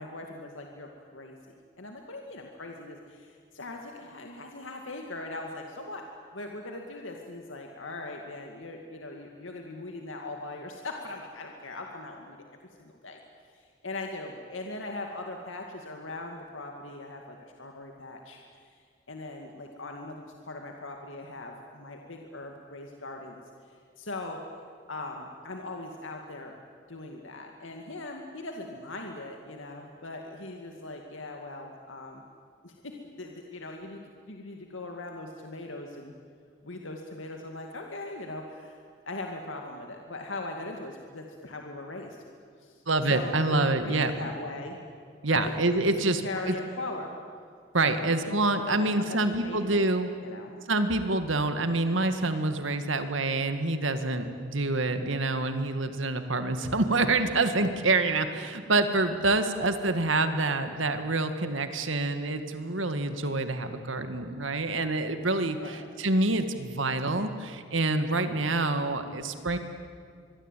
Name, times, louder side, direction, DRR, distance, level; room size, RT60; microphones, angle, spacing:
voice 1, 0.0-6.0 6.3-12.4 12.8-18.8 19.1-24.4 24.9-26.6 26.9-32.2 32.6-34.0 34.3-36.1 36.6-42.2 42.6-44.8 45.3-45.5 45.8-47.2 47.8-48.2 48.4-49.8 50.2-50.5 65.6-65.8, left 2 dB, 80° left, 2 dB, 2.3 m, -40 dB
voice 2, 42.9-44.1 45.2-46.2 46.5-46.6 47.7-50.1 50.7-69.6, right 2 dB, 75° right, 8 dB, 2.0 m, -27 dB
25.5 x 22.5 x 9.2 m, 2.1 s
head